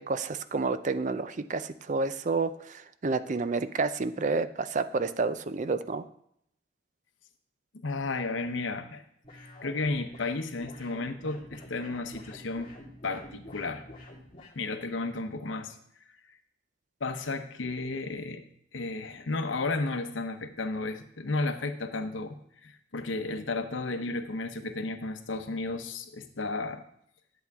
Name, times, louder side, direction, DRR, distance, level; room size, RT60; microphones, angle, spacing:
voice 1, 0.0-6.0, right 4 dB, 40° right, 12 dB, 0.5 m, -30 dB
voice 2, 7.7-9.0 9.6-12.7 13.0-13.8 14.6-15.8 17.0-18.4 18.7-26.8, left 3 dB, 85° left, 8 dB, 0.9 m, -33 dB
sound 1, 9.2-14.6, left 1 dB, 25° left, 2.1 m, -48 dB
11.0 x 7.8 x 3.6 m, 0.73 s
head